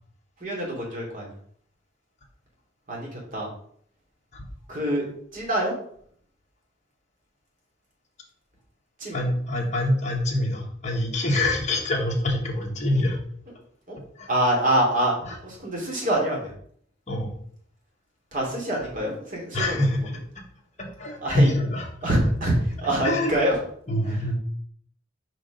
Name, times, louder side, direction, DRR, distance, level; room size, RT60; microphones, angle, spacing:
voice 1, 0.4-1.3 2.9-3.5 4.7-5.0 5.3-5.7 9.0-9.2 13.9-14.0 14.3-15.1 15.4-16.5 18.3-19.8 21.2-21.5 22.0-23.6 24.1-24.2, right 1 dB, 45° right, -2 dB, 2.7 m, -25 dB
voice 2, 9.1-13.2 14.2-14.3 15.3-15.4 17.1-17.3 19.5-20.0 21.0-21.9 23.0-23.3 23.9-24.3, left 1 dB, 40° left, -1 dB, 1.6 m, -25 dB
5.2 x 5.0 x 5.1 m, 0.62 s
head